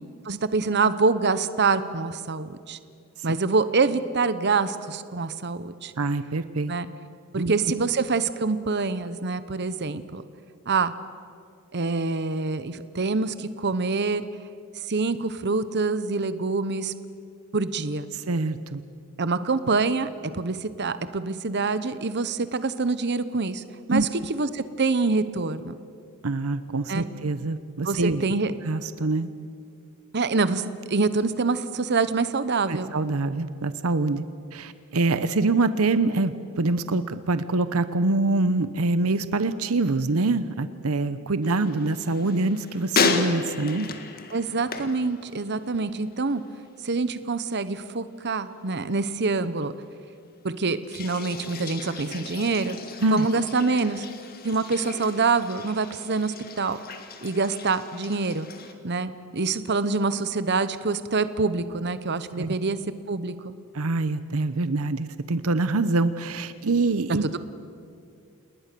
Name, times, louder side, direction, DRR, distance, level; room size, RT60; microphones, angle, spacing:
voice 1, 0.2-2.8 3.2-5.9 6.7-6.9 7.3-10.2 10.7-10.9 11.7-14.2 14.9-16.9 17.5-18.1 19.2-23.6 23.9-25.8 26.9-27.0 27.8-28.6 30.1-32.9 44.3-46.4 46.8-49.7 50.4-52.8 53.1-54.1 54.4-56.8 57.2-58.5 58.8-62.8 63.1-63.5, right 4 dB, 50° right, 13 dB, 1.0 m, -25 dB
voice 2, 6.0-6.7 7.4-7.5 18.1-18.8 23.9-24.1 26.2-28.2 28.6-29.3 32.7-34.2 34.5-43.9 53.0-53.3 62.4-62.5 63.7-67.3, right 2 dB, 80° right, 13 dB, 0.8 m, -25 dB
sound 1, 41.4-45.9 46.1-46.7 50.8-58.7, left 4 dB, 45° left, 1.8 m, -33 dB
29.0 x 20.0 x 6.9 m, 2.3 s
head